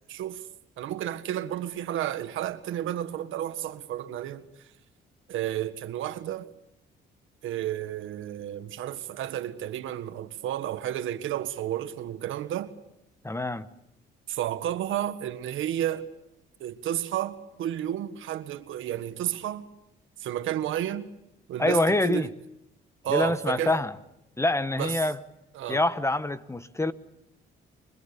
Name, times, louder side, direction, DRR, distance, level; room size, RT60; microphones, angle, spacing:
voice 1, 0.1-0.5 0.8-4.7 5.3-6.5 7.4-12.7 14.3-16.1 16.6-19.7 20.2-21.1 21.5-22.3 23.0-23.8 24.8-25.1 25.5-25.8, right 11 dB, 80° right, 1.7 m, -31 dB
voice 2, 13.2-13.7 21.6-22.3 23.1-23.9 24.4-25.2 25.7-26.9, left 2 dB, 15° left, 1.3 m, -25 dB
29.5 x 25.0 x 7.0 m
cardioid pair, 90°, 20 cm